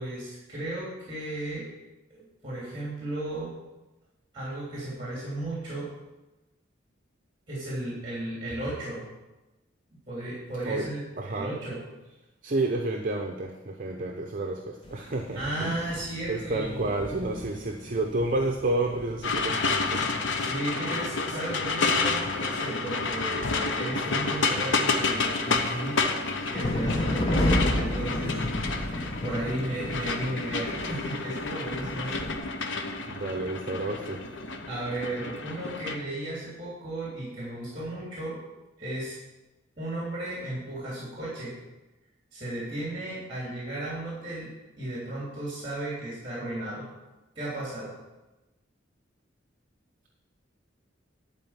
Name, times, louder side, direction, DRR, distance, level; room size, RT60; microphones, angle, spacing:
voice 1, 0.0-1.7 2.1-3.6 4.3-5.9 7.5-9.1 10.1-11.8 15.3-16.9 20.4-26.2 26.5-28.7 29.2-32.3 34.7-38.4 38.8-39.2 39.8-41.6 42.3-44.5 44.8-46.9 47.3-47.9, right 1 dB, 30° right, -7 dB, 3.1 m, -35 dB
voice 2, 11.2-11.5 12.4-15.7 16.3-20.1 33.1-34.2, right 2 dB, 45° right, 2 dB, 0.8 m, -30 dB
sound 1, 14.8-20.1 25.0-32.4, left 1 dB, 30° left, 0.9 m, -32 dB
sound 2, 19.2-36.0, left 4 dB, 80° left, 0.9 m, -30 dB
11.0 x 4.6 x 7.3 m, 1.0 s
head